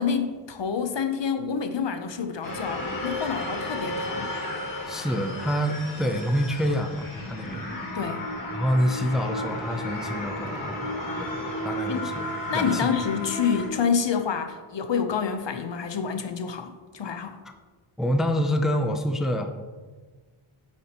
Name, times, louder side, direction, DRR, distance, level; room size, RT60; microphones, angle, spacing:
voice 1, 0.0-4.3 7.9-8.2 11.9-12.1 12.5-17.4, left 6 dB, 60° left, 7 dB, 0.8 m, -28 dB
sound 1, 2.4-13.7, left 1 dB, 40° left, 2.1 m, -33 dB
voice 2, 4.9-7.7 8.5-10.9 11.2-11.3 11.6-12.3 12.5-12.9 18.0-19.5, equal, ahead, 5 dB, 0.5 m, -27 dB
9.5 x 7.4 x 2.9 m, 1.4 s
wide cardioid pair, 125°, 49 cm